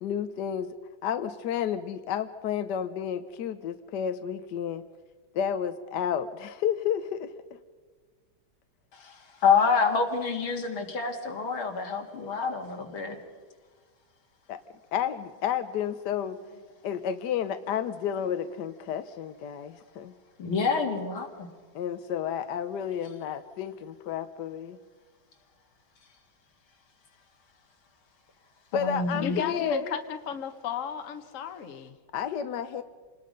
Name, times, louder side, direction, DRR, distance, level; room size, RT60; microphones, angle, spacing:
voice 1, 0.0-0.8 1.0-4.8 5.3-7.3 14.5-14.6 14.9-16.4 16.8-20.1 21.7-24.8 28.7-30.0 32.1-32.8, left 8 dB, 65° left, 10 dB, 1.2 m, -31 dB
voice 2, 8.9-13.2 20.4-21.5 28.7-29.4, left 5 dB, 80° left, 3 dB, 3.0 m, -27 dB
voice 3, 29.1-31.9, left 8 dB, 45° left, 8 dB, 1.3 m, -35 dB
27.5 x 20.0 x 5.3 m, 1.5 s
omnidirectional pair, 2.2 m